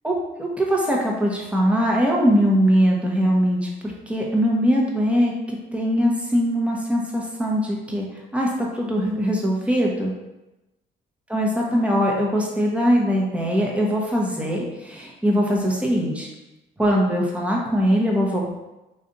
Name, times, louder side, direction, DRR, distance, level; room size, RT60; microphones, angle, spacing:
voice 1, 0.0-8.1 8.3-10.1 11.3-16.3 16.8-18.5, equal, 5° right, -3 dB, 0.9 m, -21 dB
3.2 x 2.6 x 3.9 m, 0.99 s
cardioid pair, 90°, 20 cm